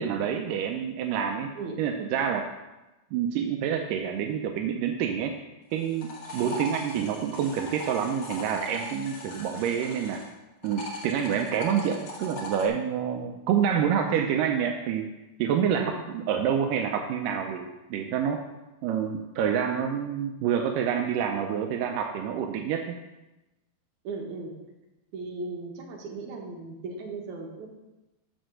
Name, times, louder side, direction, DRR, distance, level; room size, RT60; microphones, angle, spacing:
voice 1, 0.0-1.5 1.8-2.5 3.1-5.3 5.7-10.2 10.6-15.1 15.4-18.4 18.8-23.0, right 8 dB, 80° right, 4 dB, 2.0 m, -27 dB
sound 1, 5.7-10.3 10.6-12.7, left 2 dB, 60° left, 1.4 m, -39 dB
voice 2, 24.0-24.5 25.1-27.7, right 3 dB, 60° right, 0 dB, 2.5 m, -36 dB
7.9 x 6.3 x 6.3 m, 1.0 s
omnidirectional pair, 4.4 m